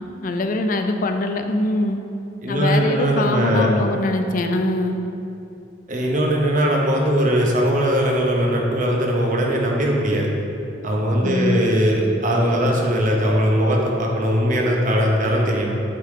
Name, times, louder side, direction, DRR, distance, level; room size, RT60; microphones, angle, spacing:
voice 1, 0.2-2.0 2.5-5.0 11.2-11.6, left 2 dB, 45° left, 6 dB, 0.4 m, -22 dB
voice 2, 2.4-3.7 5.9-10.3 10.8-15.7, equal, 40° right, -1 dB, 0.8 m, -20 dB
8.1 x 3.7 x 3.7 m, 2.8 s
head